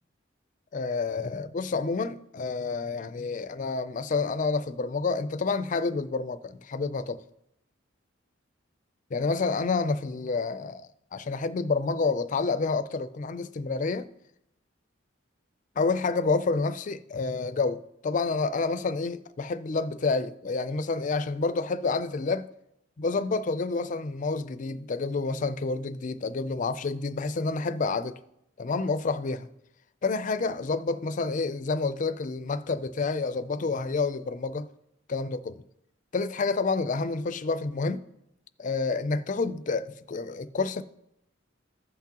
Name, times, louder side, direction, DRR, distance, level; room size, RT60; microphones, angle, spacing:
voice 1, 0.7-7.2 9.1-14.1 15.8-22.5 23.0-28.2 28.6-29.5 30.0-34.7 35.1-35.6 36.1-38.0 38.6-40.8, left 4 dB, 40° left, 0.4 m, -29 dB
15.0 x 5.9 x 2.9 m
head